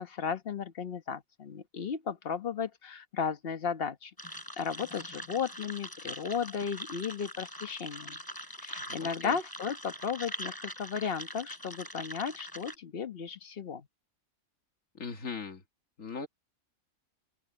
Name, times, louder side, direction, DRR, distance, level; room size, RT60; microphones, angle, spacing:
voice 1, 0.0-4.1 4.6-8.2 8.6-13.9, left 6 dB, 45° left, 1.3 m, -35 dB
sound 1, 4.2-12.7, equal, 15° left, 6.7 m, -43 dB
voice 2, 8.9-9.3 15.0-15.6 16.0-16.3, left 5 dB, 70° left, 2.6 m, -39 dB
open air
omnidirectional pair, 1.4 m